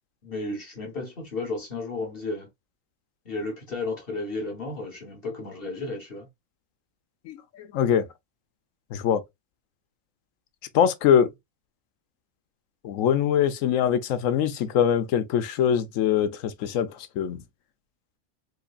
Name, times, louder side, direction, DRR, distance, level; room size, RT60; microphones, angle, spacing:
voice 1, 0.2-2.5 3.3-6.3, left 3 dB, 50° left, 1.2 m, -33 dB
voice 2, 7.3-8.1 8.9-9.2 10.7-11.3 12.8-17.4, left 9 dB, 85° left, 1.0 m, -23 dB
3.9 x 3.2 x 2.3 m
omnidirectional pair, 1.4 m